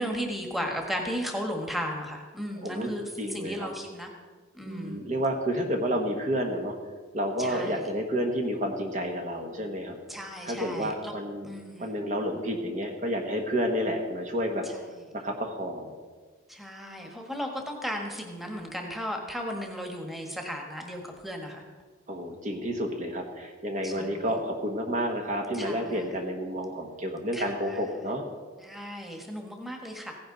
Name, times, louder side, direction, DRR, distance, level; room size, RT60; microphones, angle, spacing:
voice 1, 0.0-3.0 3.3-4.1 4.5-5.0 7.4-7.9 10.1-11.1 11.5-11.9 16.5-21.6 23.8-24.2 25.5-26.0 27.3-27.8 28.6-30.2, equal, ahead, 2 dB, 1.5 m, -35 dB
voice 2, 2.6-2.9 3.2-3.7 4.6-6.7 7.1-10.0 10.4-11.5 11.8-14.6 15.1-16.0 22.1-28.2, equal, 40° right, 3 dB, 1.2 m, -30 dB
15.5 x 10.5 x 3.9 m, 1.4 s
head